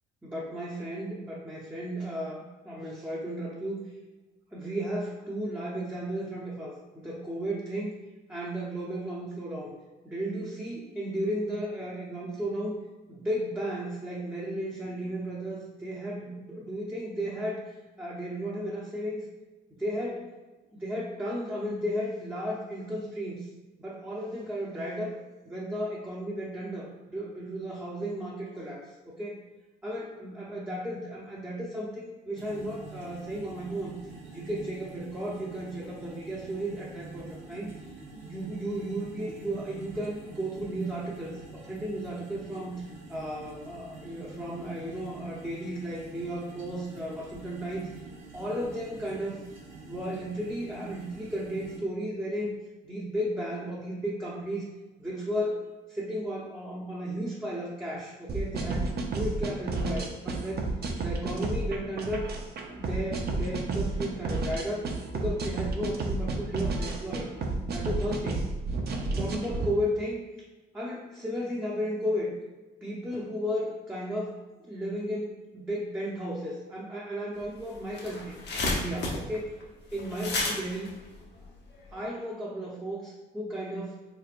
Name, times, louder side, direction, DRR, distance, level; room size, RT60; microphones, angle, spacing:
voice 1, 0.2-3.9 4.5-7.9 8.3-9.7 10.0-12.8 13.1-19.3 19.7-20.3 20.7-23.5 23.8-25.2 25.5-29.4 29.8-34.0 34.3-37.7 38.1-47.9 48.3-49.4 49.9-52.6 52.8-54.7 55.0-60.7 61.0-62.3 62.7-67.3 67.7-68.5 69.2-70.2 70.7-72.3 72.8-78.4 78.7-79.5 79.9-80.9 81.9-84.0, equal, 10° right, -5 dB, 0.7 m, -34 dB
sound 1, 32.3-51.8, right 3 dB, 80° right, 1.0 m, -47 dB
sound 2, 58.3-69.7, right 3 dB, 55° right, 0.6 m, -31 dB
sound 3, 77.4-77.5 77.7-82.0, left 2 dB, 60° left, 0.8 m, -32 dB
4.0 x 3.3 x 2.4 m, 1.2 s
cardioid pair, 90°, 20 cm